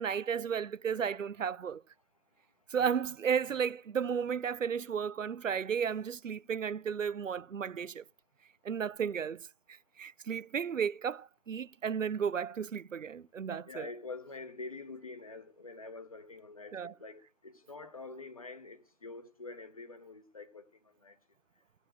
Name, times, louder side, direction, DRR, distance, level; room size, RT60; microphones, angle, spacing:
voice 1, 0.0-1.8 2.7-8.0 8.6-9.5 10.0-13.9 16.7-16.9, right 7 dB, 85° right, 0.5 m, -33 dB
voice 2, 13.6-21.2, left 3 dB, 30° left, 0.9 m, -46 dB
15.5 x 7.7 x 6.2 m
figure-of-eight pair, 155°, 37 cm